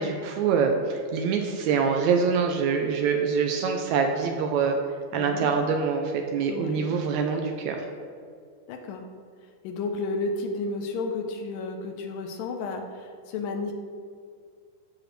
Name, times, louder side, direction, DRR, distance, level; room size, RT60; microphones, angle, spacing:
voice 1, 0.0-4.8 5.1-7.8, right 5 dB, 80° right, 3 dB, 1.6 m, -25 dB
voice 2, 5.1-5.5 6.5-6.8 8.7-9.0 9.6-13.7, left 3 dB, 90° left, 4 dB, 2.4 m, -32 dB
14.0 x 4.9 x 3.2 m, 2.1 s
omnidirectional pair, 3.9 m